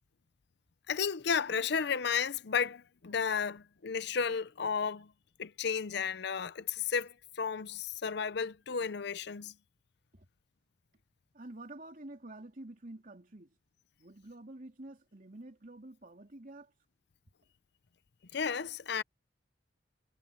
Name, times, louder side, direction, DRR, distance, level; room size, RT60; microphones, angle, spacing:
voice 1, 0.9-5.1 5.4-9.5 18.3-19.0, left 6 dB, 60° left, 0.6 m, -33 dB
voice 2, 11.3-13.6 14.0-16.7, right 1 dB, 45° right, 2.9 m, -49 dB
head